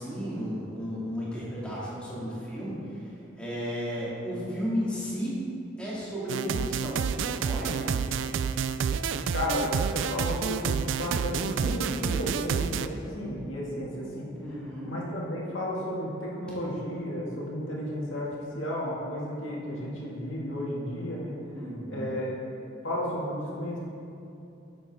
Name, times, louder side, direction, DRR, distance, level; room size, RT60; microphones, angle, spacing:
voice 1, 0.0-3.0 3.4-5.4 5.8-7.1 7.4-8.0 14.4-15.0 21.5-22.2, equal, 5° left, -8 dB, 2.2 m, -34 dB
sound 1, 6.3-12.9, right 6 dB, 80° right, 0.3 m, -29 dB
voice 2, 9.3-18.3 18.5-21.4 21.9-22.4 22.8-23.8, left 1 dB, 90° left, -4 dB, 2.0 m, -33 dB
9.5 x 7.9 x 3.6 m, 2.7 s
head